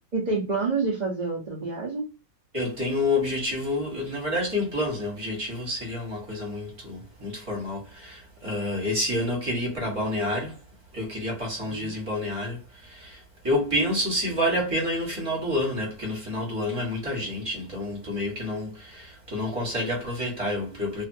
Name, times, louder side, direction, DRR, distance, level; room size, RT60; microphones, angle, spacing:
voice 1, 0.1-2.1 11.6-11.9, right 4 dB, 55° right, 0.4 m, -28 dB
voice 2, 2.5-10.6 10.9-21.0, left 1 dB, 20° right, 1.1 m, -29 dB
2.7 x 2.5 x 2.6 m
omnidirectional pair, 2.0 m